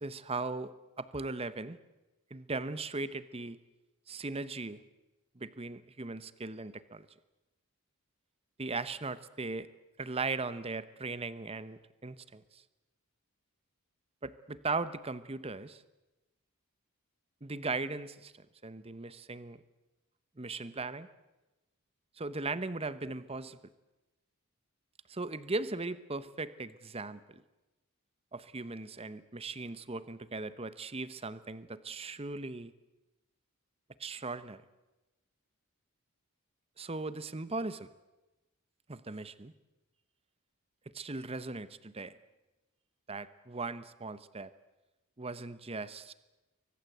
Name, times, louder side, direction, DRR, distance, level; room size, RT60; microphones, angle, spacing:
voice 1, 0.0-1.8 2.3-3.6 4.1-4.8 5.3-7.1 8.6-9.7 10.0-12.6 14.2-15.8 17.4-19.6 20.4-21.1 22.2-23.6 25.1-27.4 28.3-32.7 34.0-34.6 36.8-37.9 38.9-39.5 40.9-42.1 43.1-44.5 45.2-46.1, right 3 dB, 25° right, 14 dB, 0.9 m, -38 dB
29.0 x 23.5 x 8.0 m, 1.1 s
head